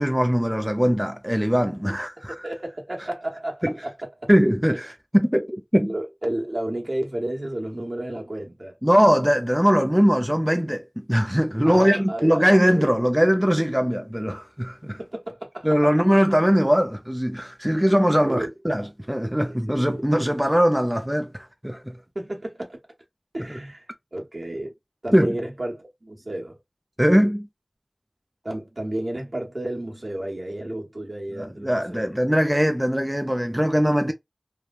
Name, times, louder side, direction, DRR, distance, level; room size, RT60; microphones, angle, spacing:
voice 1, 0.0-2.5 3.6-3.7 4.3-5.9 8.8-15.0 15.6-22.0 25.1-25.4 27.0-27.5 31.4-34.1, equal, 5° right, 0.4 m, -21 dB
voice 2, 2.4-4.3 5.8-8.8 11.6-12.9 15.0-15.7 18.1-18.5 19.4-20.4 22.1-22.8 23.3-23.8 24.1-24.7 25.0-26.6 28.4-32.1, right 1 dB, 60° right, 1.2 m, -32 dB
3.1 x 2.2 x 2.2 m
wide cardioid pair, 45°, 0 cm